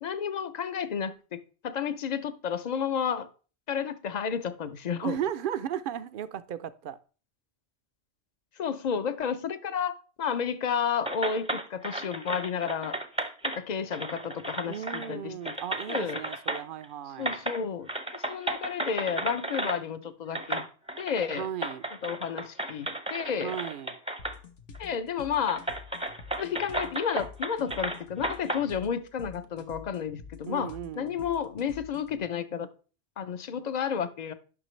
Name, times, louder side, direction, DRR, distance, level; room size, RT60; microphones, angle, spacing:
voice 1, 0.0-3.3 3.7-5.2 8.6-13.0 13.4-15.5 15.9-16.2 17.2-20.7 21.0-21.5 22.0-23.5 24.8-25.6 26.4-32.7 33.2-34.3, left 7 dB, 50° left, 0.6 m, -31 dB
voice 2, 5.0-7.0 14.7-17.4 21.3-21.9 23.4-24.0 30.5-31.2, right 10 dB, 60° right, 0.6 m, -35 dB
sound 1, 11.0-13.6 13.9-15.1 15.5-16.9 17.2-17.6 17.9-19.8 20.3-24.4 24.7-24.8 25.5-28.6, right 1 dB, 5° right, 0.5 m, -34 dB
sound 2, 24.2-32.2, left 5 dB, 70° left, 1.1 m, -48 dB
9.7 x 5.8 x 3.1 m
omnidirectional pair, 1.1 m